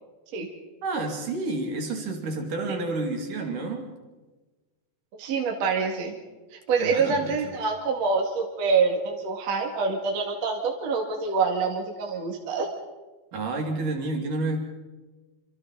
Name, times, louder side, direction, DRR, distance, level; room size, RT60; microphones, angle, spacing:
voice 1, 0.8-4.0 6.8-7.5 13.3-14.6, right 2 dB, 70° right, 2 dB, 4.1 m, -30 dB
voice 2, 5.1-6.2 6.5-12.7, right 4 dB, 50° right, 1 dB, 3.2 m, -26 dB
27.0 x 26.5 x 4.1 m, 1.2 s
omnidirectional pair, 3.9 m